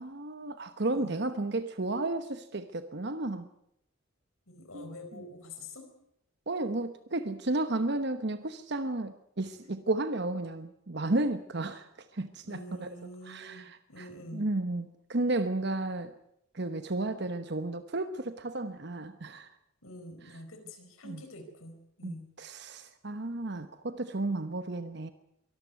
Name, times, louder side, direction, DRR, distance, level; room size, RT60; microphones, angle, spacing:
voice 1, 0.0-3.5 4.7-4.9 6.5-12.9 13.3-16.1 16.5-19.5 21.0-21.2 22.0-25.1, right 2 dB, 55° right, 10 dB, 1.0 m, -33 dB
voice 2, 4.5-5.9 9.6-9.7 12.4-14.5 19.8-22.3, left 1 dB, 80° left, 6 dB, 4.5 m, -46 dB
23.5 x 13.5 x 9.4 m, 0.76 s
head